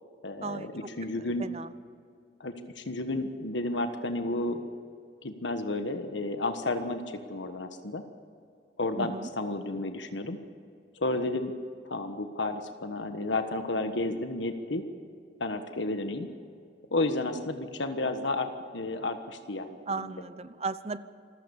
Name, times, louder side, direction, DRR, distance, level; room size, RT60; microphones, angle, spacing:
voice 1, 0.2-1.5 2.4-4.6 5.2-8.0 8.8-10.4 11.0-11.5 11.8-14.8 15.4-16.3 16.9-20.1, left 2 dB, 90° left, 7 dB, 1.4 m, -32 dB
voice 2, 1.1-1.7 9.0-9.3 19.9-21.0, right 3 dB, 35° right, 14 dB, 0.8 m, -36 dB
26.5 x 15.0 x 7.1 m, 2.4 s
head